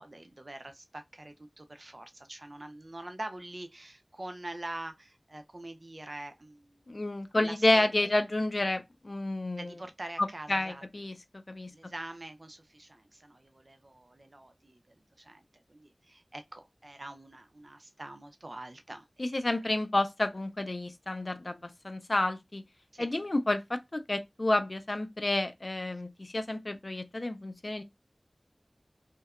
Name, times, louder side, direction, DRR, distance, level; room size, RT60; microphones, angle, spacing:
voice 1, 0.0-6.9 7.3-7.9 9.6-10.8 11.7-19.4 22.9-23.1, right 1 dB, 55° right, 0.4 m, -45 dB
voice 2, 6.9-9.8 10.2-11.7 19.2-22.6 23.0-27.8, left 2 dB, 55° left, 0.4 m, -30 dB
2.7 x 2.1 x 2.3 m
wide cardioid pair, 40°, 0 cm